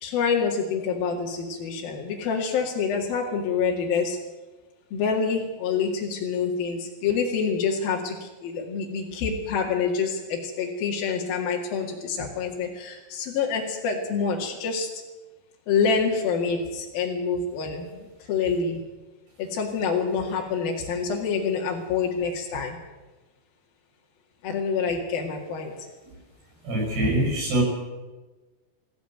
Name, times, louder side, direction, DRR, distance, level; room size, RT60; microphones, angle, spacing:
voice 1, 0.0-4.2 4.9-14.9 15.7-18.8 19.4-22.8 24.4-25.9, left 5 dB, 65° left, -1 dB, 3.8 m, -27 dB
voice 2, 26.6-27.6, right 1 dB, 75° right, 0 dB, 9.1 m, -23 dB
22.0 x 15.0 x 9.3 m, 1.2 s
omnidirectional pair, 4.7 m